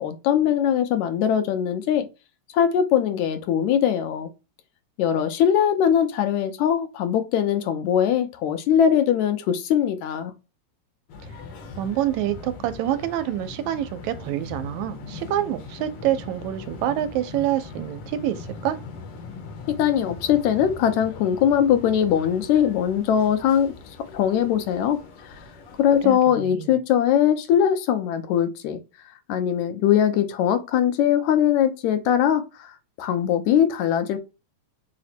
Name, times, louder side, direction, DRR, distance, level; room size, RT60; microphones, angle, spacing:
voice 1, 0.0-2.1 2.5-4.3 5.0-10.3 19.8-23.7 24.1-25.0 25.8-28.8 29.3-32.4 33.0-34.2, left 9 dB, 80° left, 2.1 m, -21 dB
sound 1, 11.1-26.1, left 4 dB, 65° left, 1.5 m, -40 dB
voice 2, 11.8-18.8 26.0-26.7, right 12 dB, 85° right, 1.9 m, -27 dB
4.9 x 2.1 x 4.2 m
omnidirectional pair, 3.3 m